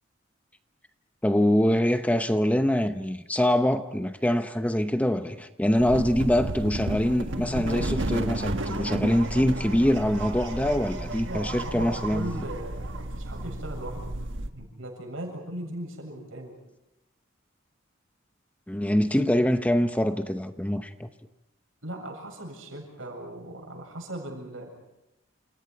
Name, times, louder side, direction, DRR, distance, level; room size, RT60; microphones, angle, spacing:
voice 1, 1.2-12.3 18.7-21.1, equal, 5° left, 0.8 m, -24 dB
sound 1, 5.8-14.5, right 1 dB, 65° right, 1.5 m, -32 dB
voice 2, 11.3-14.2 14.5-16.6 21.8-24.7, right 1 dB, 80° right, 7.5 m, -38 dB
29.0 x 28.0 x 4.7 m
head